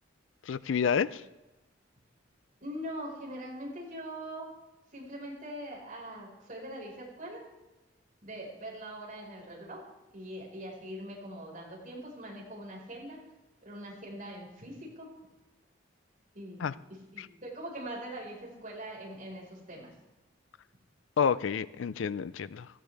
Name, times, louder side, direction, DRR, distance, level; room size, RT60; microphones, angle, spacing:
voice 1, 0.5-1.2 16.6-16.7 17.2-17.3 21.2-22.7, left 7 dB, 70° left, 17 dB, 0.4 m, -29 dB
voice 2, 2.6-4.5 4.9-7.4 8.2-9.8 10.1-13.2 13.6-15.1 16.3-16.7 17.1-19.9, right 1 dB, 40° right, -3 dB, 4.9 m, -42 dB
16.5 x 14.5 x 3.4 m, 1.0 s
head